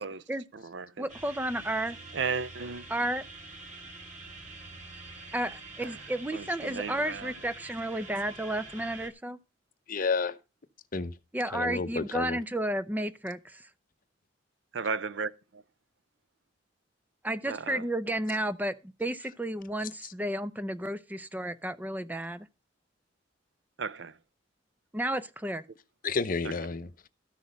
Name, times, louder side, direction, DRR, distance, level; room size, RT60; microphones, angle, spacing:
voice 1, 0.0-0.4 1.0-2.0 2.9-3.2 5.3-9.4 11.3-13.7 17.2-22.5 24.9-25.7, right 1 dB, 10° right, 0.6 m, -32 dB
voice 2, 0.5-1.0 2.1-2.8 6.3-7.3 14.7-15.6 17.5-17.8 23.8-24.1, right 5 dB, 70° right, 0.6 m, -34 dB
sound 1, 1.1-9.1, right 3 dB, 40° right, 2.1 m, -46 dB
voice 3, 9.9-10.3 10.9-11.1 11.5-12.4 26.0-26.9, left 4 dB, 50° left, 0.8 m, -30 dB
13.5 x 6.2 x 5.2 m
head